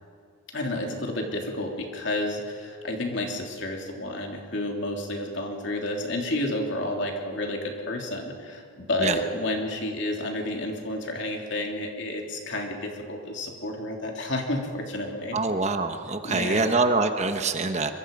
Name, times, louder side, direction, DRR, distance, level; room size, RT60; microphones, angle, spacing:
voice 1, 0.5-15.4 16.2-16.8, left 1 dB, 55° left, 1 dB, 3.2 m, -30 dB
voice 2, 15.3-17.9, right 3 dB, 30° right, 7 dB, 1.1 m, -25 dB
26.0 x 23.5 x 5.4 m, 2.3 s
head